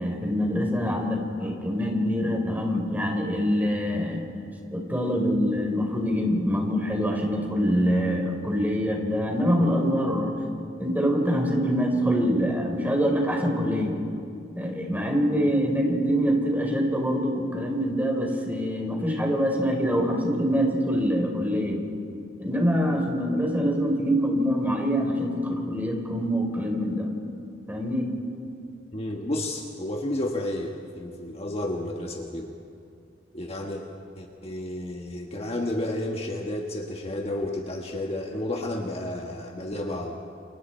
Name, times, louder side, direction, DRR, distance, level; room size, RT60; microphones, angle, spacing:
voice 1, 0.0-4.2 4.7-10.3 10.8-14.0 14.5-21.8 22.4-27.1 27.7-28.1, equal, 10° right, 1 dB, 4.0 m, -25 dB
voice 2, 28.9-32.5 33.3-33.8 34.2-40.2, left 1 dB, 35° left, 1 dB, 1.5 m, -31 dB
30.0 x 28.5 x 4.5 m, 2.4 s
head